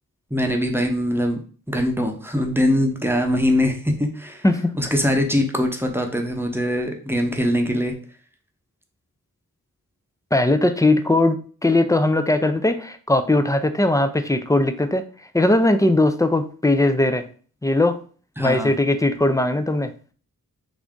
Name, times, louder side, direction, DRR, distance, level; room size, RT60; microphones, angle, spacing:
voice 1, 0.3-1.4 1.7-4.4 4.8-7.9 18.4-18.7, left 1 dB, 5° right, 2 dB, 0.7 m, -22 dB
voice 2, 4.4-4.9 10.3-15.0 15.3-17.3 17.6-18.0 18.4-20.1, left 2 dB, 10° left, 8 dB, 0.4 m, -19 dB
3.5 x 2.6 x 3.6 m, 0.41 s
wide cardioid pair, 50°, 36 cm